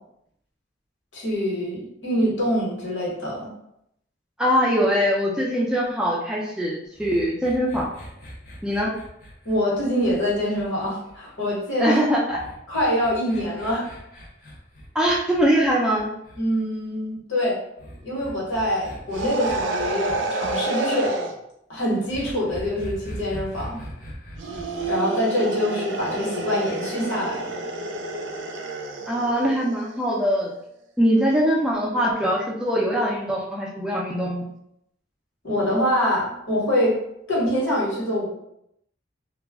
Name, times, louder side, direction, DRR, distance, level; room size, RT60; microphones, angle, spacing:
voice 1, 1.1-3.5 9.4-12.0 12.7-13.8 16.4-17.6 18.0-21.2 21.7-23.8 24.9-27.6 35.4-37.0 37.3-38.3, equal, 80° left, -5 dB, 1.1 m, -24 dB
voice 2, 4.4-7.9 8.6-8.9 11.8-12.4 14.9-16.1 29.1-30.5 31.0-34.4, equal, 5° right, -4 dB, 0.3 m, -22 dB
sound 1, 6.9-11.4 12.3-16.4 17.8-20.5 22.1-24.9, equal, 45° left, 0.7 m, -40 dB
sound 2, 19.1-21.3 24.4-29.9, right 2 dB, 75° right, 0.4 m, -29 dB
2.3 x 2.0 x 3.4 m, 0.78 s
head